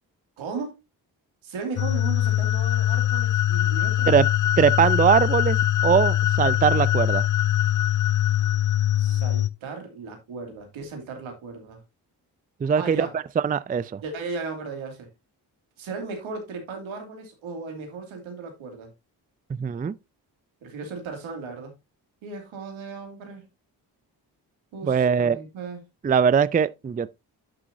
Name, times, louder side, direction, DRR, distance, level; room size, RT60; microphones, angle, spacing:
voice 1, 0.4-0.7 1.4-4.1 9.0-11.8 12.8-13.1 14.0-15.1 15.8-18.9 20.6-21.7 22.2-23.5 24.7-25.8, right 4 dB, 80° right, 2.7 m, -36 dB
sound 1, 1.8-9.5, left 12 dB, 40° left, 0.6 m, -22 dB
voice 2, 4.6-5.6 5.8-7.3 12.6-13.1 13.4-14.0 19.5-19.9 24.8-25.4 26.0-27.1, right 7 dB, 20° right, 0.4 m, -21 dB
11.5 x 6.1 x 2.7 m
supercardioid pair, 45°, 47 cm